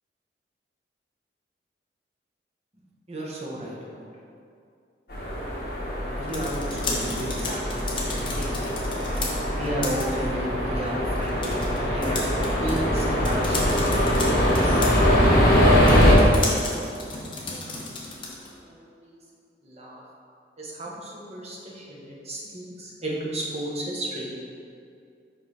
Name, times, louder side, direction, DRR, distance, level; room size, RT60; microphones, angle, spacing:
voice 1, 3.1-4.1 6.1-8.6 9.6-12.2 12.5-15.8 16.6-16.8 17.3-18.3 18.6-19.2 19.6-20.0 20.6-24.3, right 1 dB, 35° right, -4 dB, 1.0 m, -34 dB
sound 1, 5.1-16.1, equal, 50° left, 1.4 m, -23 dB
sound 2, 6.1-18.6, left 3 dB, 25° left, 0.8 m, -35 dB
5.3 x 5.0 x 4.2 m, 2.4 s
head